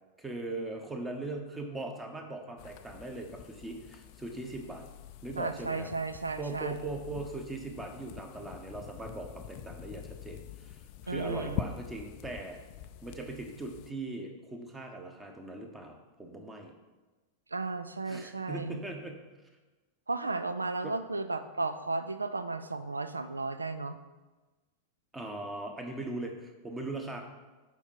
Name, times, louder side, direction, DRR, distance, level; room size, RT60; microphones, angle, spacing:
voice 1, 0.2-4.9 5.2-5.9 6.4-12.6 13.0-16.7 18.1-19.2 20.8-20.9 25.1-27.2, right 2 dB, 10° right, 3 dB, 1.1 m, -40 dB
sound 1, 2.6-13.9, left 10 dB, 45° left, 0.4 m, -45 dB
voice 2, 5.4-6.8 11.1-11.6 17.5-18.8 20.1-24.0, right 3 dB, 80° right, 11 dB, 0.4 m, -34 dB
7.1 x 4.5 x 5.5 m, 1.2 s
figure-of-eight pair, 90°, 0 cm